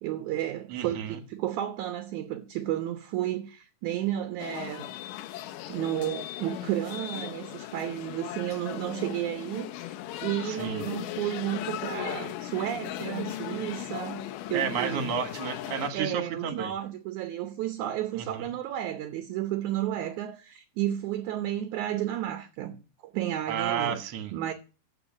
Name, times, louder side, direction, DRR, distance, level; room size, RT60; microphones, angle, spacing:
voice 1, 0.0-4.9 5.7-10.0 10.2-15.1 15.9-22.8 23.0-24.0 24.3-24.5, right 12 dB, 75° right, 1.9 m, -32 dB
voice 2, 0.7-1.2 10.5-10.8 14.5-16.7 18.2-18.5 23.5-24.3, right 7 dB, 55° right, 2.0 m, -31 dB
sound 1, 4.4-15.9, left 14 dB, 75° left, 2.2 m, -38 dB
14.5 x 4.9 x 6.1 m
omnidirectional pair, 4.0 m